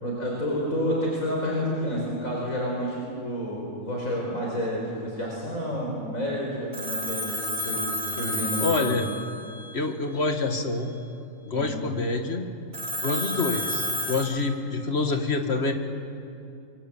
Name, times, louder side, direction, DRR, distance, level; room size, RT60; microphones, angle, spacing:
voice 1, 0.0-8.9 11.5-11.8, equal, 80° left, -2 dB, 4.8 m, -30 dB
Telephone, 6.7-9.8 12.7-14.2, left 1 dB, 60° right, 2.9 m, -30 dB
voice 2, 8.6-9.1 9.7-10.9 11.5-12.5 13.0-15.7, left 3 dB, 50° left, 5 dB, 2.1 m, -26 dB
26.5 x 23.5 x 8.5 m, 2.6 s
omnidirectional pair, 1.4 m